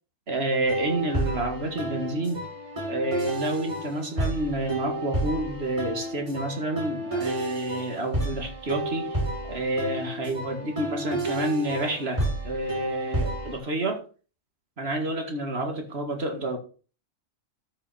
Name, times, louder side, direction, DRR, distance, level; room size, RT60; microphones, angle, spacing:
voice 1, 0.3-2.5 2.9-9.2 9.4-14.0 14.8-16.6, right 1 dB, 50° right, 4 dB, 2.3 m, -29 dB
sound 1, 0.6-13.6, right 1 dB, 25° right, 5.3 m, -31 dB
12.5 x 5.9 x 4.3 m, 0.36 s
omnidirectional pair, 1.3 m